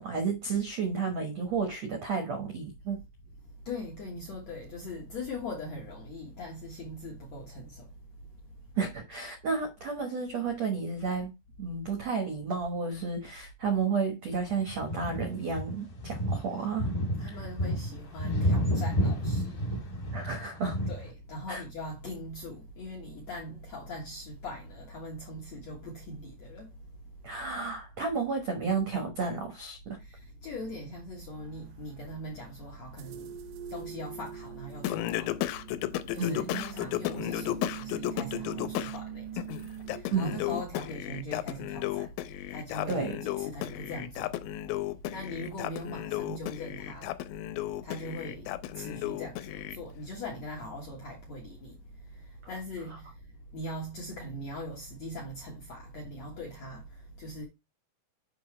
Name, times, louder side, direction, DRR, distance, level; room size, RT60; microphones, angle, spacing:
voice 1, 0.0-3.0 8.8-11.3 11.6-17.4 20.1-20.8 21.5-21.6 27.2-29.8 36.2-36.6 40.1-40.6 42.9-43.2, right 5 dB, 75° right, 1.5 m, -32 dB
voice 2, 3.6-8.3 17.2-19.9 20.9-27.0 30.0-33.3 33.7-35.4 35.7-35.8 36.0-42.2 42.5-44.6 45.0-47.5 47.8-57.4, left 1 dB, 65° left, 1.8 m, -41 dB
sound 1, 14.5-21.1, equal, 30° left, 1.7 m, -30 dB
sound 2, 31.3-40.0, right 10 dB, 90° right, 3.1 m, -44 dB
Singing, 34.8-39.0 39.4-49.8, left 15 dB, 85° left, 2.9 m, -34 dB
7.0 x 5.7 x 3.2 m
omnidirectional pair, 5.1 m